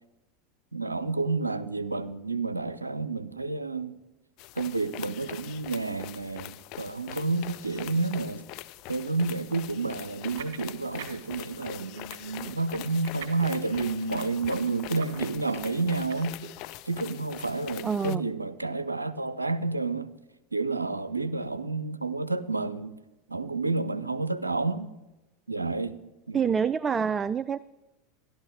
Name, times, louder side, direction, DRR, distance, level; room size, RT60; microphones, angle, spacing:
voice 1, 0.7-3.9 4.6-8.4 8.9-16.4 16.9-20.1 20.5-22.9 23.3-24.9 25.5-26.0 26.3-26.5, right 3 dB, 90° right, 0.5 m, -30 dB
sound 1, 4.4-18.2, left 17 dB, 50° left, 0.4 m, -43 dB
sound 2, 10.2-11.4 11.6-16.5, right 10 dB, 60° right, 1.4 m, -43 dB
voice 2, 17.8-18.2 26.3-27.6, right 6 dB, 25° right, 0.3 m, -26 dB
14.0 x 11.5 x 4.6 m
figure-of-eight pair, 80°, 0 cm